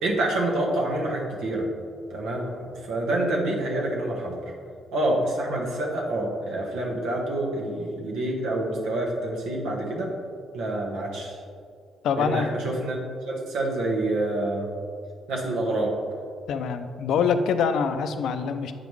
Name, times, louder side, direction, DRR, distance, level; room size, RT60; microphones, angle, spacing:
voice 1, 0.0-1.7 2.1-4.4 4.9-10.1 10.5-11.4 12.1-13.0 13.2-14.7 15.3-15.9, right 1 dB, 85° right, -1 dB, 1.3 m, -27 dB
voice 2, 12.0-12.5 16.5-18.7, left 6 dB, 80° left, 9 dB, 0.4 m, -25 dB
8.0 x 5.1 x 3.2 m, 2.2 s
cardioid pair, 90°, 0 cm